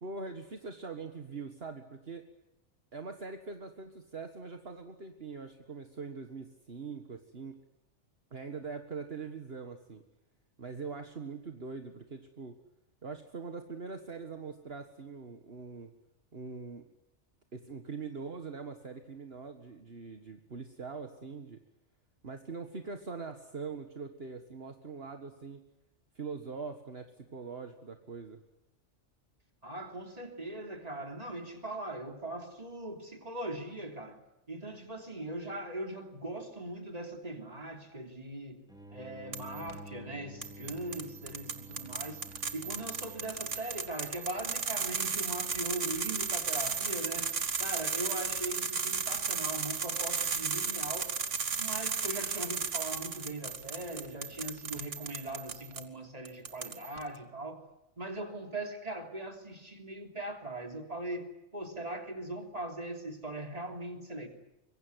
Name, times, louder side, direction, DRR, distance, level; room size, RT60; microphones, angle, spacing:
voice 1, 0.0-2.3 2.9-7.6 8.3-10.0 10.6-12.5 13.0-15.9 16.3-16.8 17.5-21.6 22.2-25.7 26.2-28.4, right 4 dB, 55° right, 6 dB, 1.9 m, -42 dB
voice 2, 29.6-34.2 34.5-38.6 38.9-42.2 42.5-47.3 47.6-51.1 51.5-57.6 58.0-64.3, right 1 dB, 30° right, 5 dB, 3.4 m, -40 dB
sound 1, 38.7-44.1, right 1 dB, 5° right, 3.6 m, -51 dB
sound 2, 39.3-39.7 40.4-55.8 56.3-57.0, right 5 dB, 85° right, 2.1 m, -35 dB
25.0 x 23.5 x 9.7 m, 0.87 s
omnidirectional pair, 1.2 m